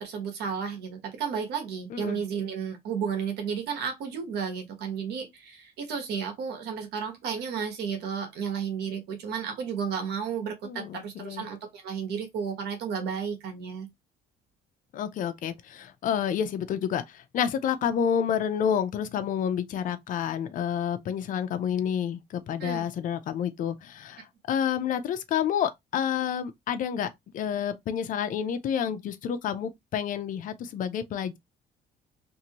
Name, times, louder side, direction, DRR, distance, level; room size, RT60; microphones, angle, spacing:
voice 1, 0.0-13.9 22.6-22.9, right 6 dB, 75° right, 1.2 m, -33 dB
voice 2, 1.9-2.2 10.6-11.5 14.9-27.1 27.3-31.4, left 8 dB, 50° left, 0.5 m, -29 dB
2.7 x 2.6 x 2.8 m
cardioid pair, 110°, 17 cm